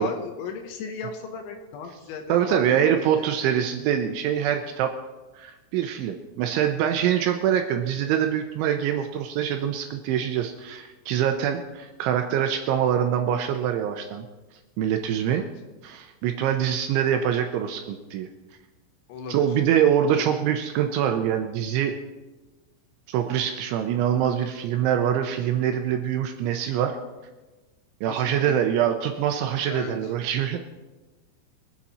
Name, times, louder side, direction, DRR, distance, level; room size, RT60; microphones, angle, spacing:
voice 1, 0.0-3.3 15.3-15.5 19.1-19.5 20.1-20.4 28.1-28.6 29.7-30.1, left 5 dB, 75° left, 5 dB, 3.2 m, -36 dB
voice 2, 2.3-4.9 5.4-14.3 14.8-15.4 15.8-18.3 19.3-22.0 23.1-27.0 28.0-30.6, right 9 dB, 80° right, 5 dB, 2.8 m, -24 dB
23.0 x 8.3 x 4.3 m, 1.2 s
omnidirectional pair, 6.0 m